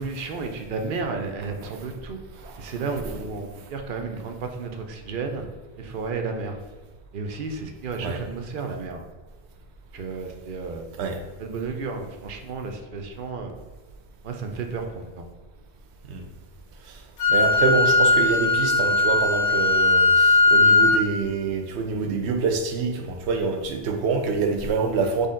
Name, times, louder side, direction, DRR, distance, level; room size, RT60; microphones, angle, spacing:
voice 1, 0.0-2.2 2.6-5.5 5.8-6.6 7.1-9.0 9.9-11.1 11.4-13.5 14.2-15.2, right 4 dB, 60° right, 4 dB, 0.7 m, -32 dB
voice 2, 2.4-2.7 8.0-8.2 11.0-11.2 16.1-16.2 16.9-17.0 17.3-25.3, right 4 dB, 80° right, 4 dB, 0.9 m, -26 dB
Wind instrument woodwind instrument, 17.2-21.0, left 2 dB, 70° left, 1.0 m, -18 dB
4.1 x 3.3 x 3.7 m, 1.3 s
omnidirectional pair, 1.1 m